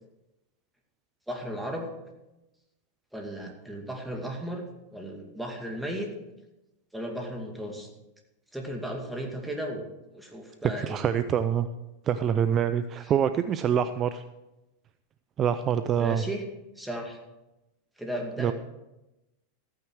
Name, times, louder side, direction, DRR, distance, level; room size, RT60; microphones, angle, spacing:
voice 1, 1.3-1.9 3.1-4.7 4.9-6.1 6.9-7.9 8.5-9.9 10.1-11.0 13.0-13.1 16.0-16.4 16.8-17.2 18.0-18.5, equal, 5° right, 2 dB, 2.3 m, -35 dB
voice 2, 10.8-11.7 12.1-14.2 15.4-16.2 18.4-18.5, right 8 dB, 30° right, 12 dB, 0.5 m, -25 dB
14.0 x 9.3 x 4.7 m, 0.99 s
hypercardioid pair, 120°, 0 cm